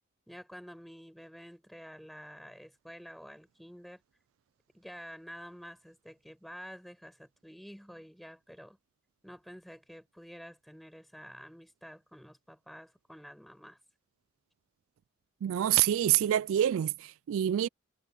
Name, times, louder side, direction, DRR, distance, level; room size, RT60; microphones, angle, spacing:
voice 1, 0.3-4.0 4.7-8.8 9.2-13.8, equal, ahead, 6.3 m, -49 dB
voice 2, 15.4-17.7, right 11 dB, 80° right, 0.3 m, -27 dB
head